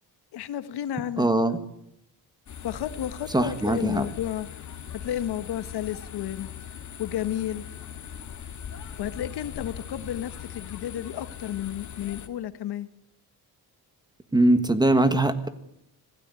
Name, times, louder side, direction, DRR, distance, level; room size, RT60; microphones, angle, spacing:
voice 1, 0.3-1.6 2.6-4.6 4.9-6.5 7.0-7.6 9.0-12.9, left 11 dB, 85° left, 13 dB, 1.5 m, -32 dB
voice 2, 1.2-1.6 3.3-4.0 14.3-15.5, right 2 dB, 10° right, 11 dB, 1.6 m, -21 dB
sound 1, 2.5-12.3, left 8 dB, 50° left, 2.0 m, -40 dB
26.0 x 16.5 x 9.7 m, 0.78 s
cardioid pair, 160°, 38 cm